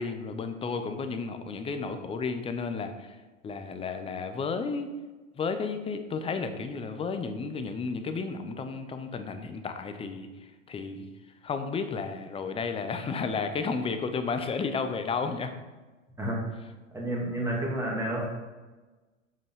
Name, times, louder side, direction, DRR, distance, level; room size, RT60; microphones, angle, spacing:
voice 1, 0.0-3.2 3.4-4.9 5.4-10.3 10.7-11.1 11.4-15.5, left 4 dB, 15° left, 8 dB, 0.6 m, -32 dB
voice 2, 16.9-18.3, right 1 dB, 5° right, -3 dB, 2.4 m, -30 dB
7.4 x 5.4 x 5.6 m, 1.2 s
hypercardioid pair, 110°, 39 cm